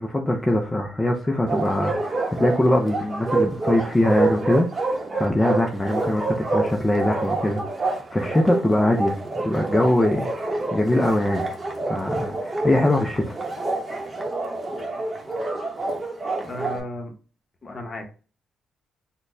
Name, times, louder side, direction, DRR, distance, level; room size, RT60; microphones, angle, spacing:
voice 1, 0.0-9.2 9.4-11.4 11.9-13.4, left 1 dB, 15° left, 2 dB, 0.5 m, -22 dB
Bark, 1.5-16.8, right 2 dB, 20° right, 1.0 m, -27 dB
voice 2, 16.4-17.1 17.6-18.1, left 1 dB, 35° left, 5 dB, 0.9 m, -34 dB
3.9 x 2.2 x 3.3 m, 0.37 s
cardioid pair, 90°, 0 cm